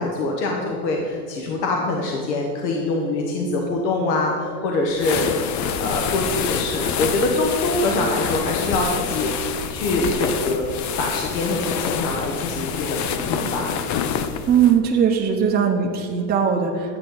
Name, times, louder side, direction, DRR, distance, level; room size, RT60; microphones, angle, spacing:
voice 1, 0.0-9.3 9.7-10.6 11.0-13.7, left 2 dB, 80° left, 0 dB, 1.4 m, -24 dB
sound 1, 4.9-14.8, left 8 dB, 35° left, 0.6 m, -27 dB
voice 2, 14.5-17.0, right 7 dB, 20° right, -1 dB, 0.9 m, -19 dB
10.0 x 8.8 x 3.9 m, 2.4 s
supercardioid pair, 110°, 49 cm